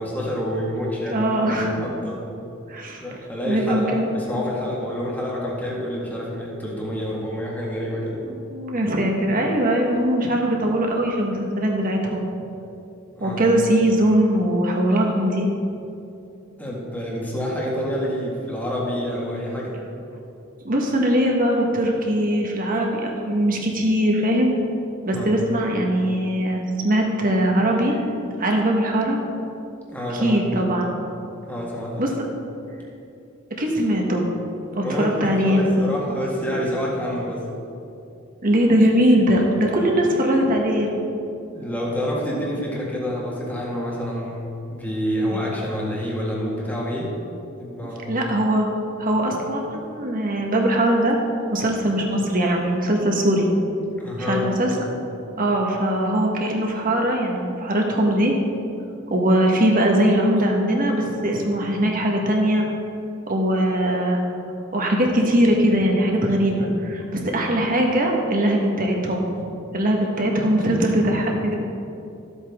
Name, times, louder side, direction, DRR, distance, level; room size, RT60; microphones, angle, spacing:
voice 1, 0.0-2.2 3.0-8.2 13.2-13.5 16.6-19.8 25.1-25.4 29.9-30.4 31.4-32.1 34.8-37.4 41.5-47.1 47.6-48.2 54.0-54.5, equal, 10° left, -4 dB, 1.8 m, -28 dB
voice 2, 1.1-1.7 2.7-3.0 3.4-4.0 8.5-12.2 13.2-15.5 20.6-24.5 25.0-28.0 28.4-29.2 30.1-30.9 32.0-32.3 33.6-34.2 34.7-35.9 38.4-40.9 45.3-45.4 48.1-48.7 49.0-51.2 51.5-53.5 54.2-54.7 55.4-58.3 59.1-62.6 63.3-64.2 64.7-69.3 69.7-71.5, right 1 dB, 45° right, 0 dB, 1.3 m, -21 dB
13.0 x 8.2 x 3.6 m, 2.7 s
head